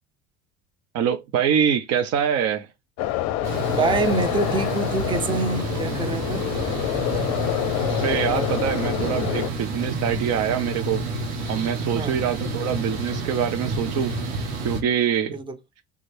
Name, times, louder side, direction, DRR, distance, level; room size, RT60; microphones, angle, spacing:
voice 1, 0.9-2.7 8.0-11.0 11.5-14.1 14.6-15.4, right 8 dB, 50° right, 0.7 m, -24 dB
sound 1, 3.0-9.5, left 13 dB, 55° left, 0.6 m, -27 dB
sound 2, 3.4-14.8, right 2 dB, 80° right, 1.4 m, -29 dB
voice 2, 3.7-6.5 11.9-12.2 15.3-15.6, right 3 dB, 15° right, 0.7 m, -25 dB
3.5 x 3.2 x 4.2 m
hypercardioid pair, 65°, 33 cm